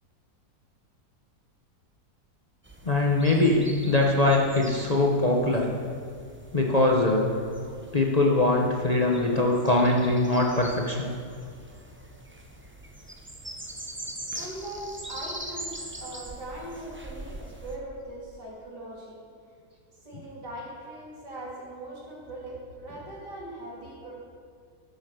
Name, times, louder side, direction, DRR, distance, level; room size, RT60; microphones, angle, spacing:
sound 1, 2.6-17.8, right 1 dB, 15° right, 0.4 m, -43 dB
voice 1, 2.8-5.7 6.5-7.3 7.9-11.1, left 2 dB, 30° left, -1 dB, 0.8 m, -22 dB
voice 2, 13.9-15.7 16.0-19.2 20.0-24.1, right 1 dB, 85° right, -4 dB, 3.3 m, -40 dB
12.5 x 7.0 x 6.5 m, 2.1 s
omnidirectional pair, 1.8 m